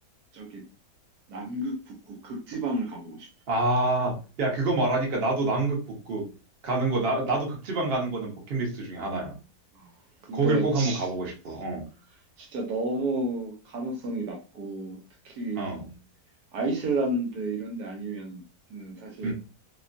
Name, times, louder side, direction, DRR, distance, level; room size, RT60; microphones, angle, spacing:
voice 1, 1.3-3.3 9.7-9.9 10.3-11.0 12.4-15.0 15.2-15.6 16.5-18.4 18.7-19.3, right 2 dB, 70° right, 1 dB, 1.2 m, -31 dB
voice 2, 3.5-6.3 6.6-9.4 10.3-11.9 15.6-15.9 19.2-19.3, right 2 dB, 45° right, -1 dB, 0.8 m, -27 dB
2.9 x 2.2 x 2.5 m, 0.33 s
omnidirectional pair, 1.8 m